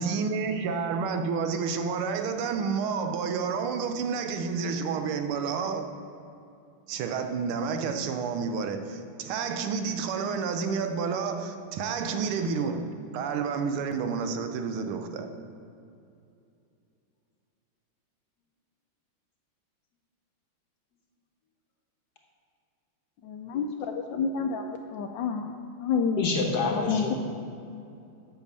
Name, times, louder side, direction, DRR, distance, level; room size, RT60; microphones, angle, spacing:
voice 1, 0.0-6.0 6.9-15.4, right 5 dB, 80° right, 1.6 m, -30 dB
voice 2, 23.2-25.5 25.8-26.2 26.7-27.1, left 6 dB, 75° left, 1.1 m, -29 dB
voice 3, 26.2-27.1, left 3 dB, 55° left, 1.3 m, -27 dB
8.4 x 5.9 x 6.7 m
omnidirectional pair, 2.4 m